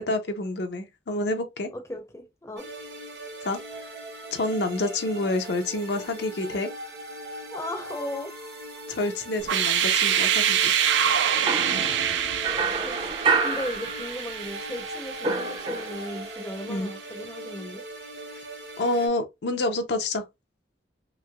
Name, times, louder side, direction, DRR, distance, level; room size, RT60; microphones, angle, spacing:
voice 1, 0.1-1.7 3.4-3.6 4.3-6.7 8.9-10.7 16.7-16.9 18.8-20.2, left 2 dB, 70° left, 0.6 m, -28 dB
voice 2, 1.7-2.6 7.5-8.3 12.7-13.0 13.4-17.8, left 1 dB, 15° left, 0.6 m, -36 dB
sound 1, 2.6-19.1, right 1 dB, 60° right, 0.9 m, -40 dB
sound 2, 9.4-16.3, right 8 dB, 80° right, 0.4 m, -26 dB
sound 3, 11.5-14.5 14.7-16.2, right 4 dB, 30° right, 0.5 m, -28 dB
3.1 x 2.8 x 2.3 m
head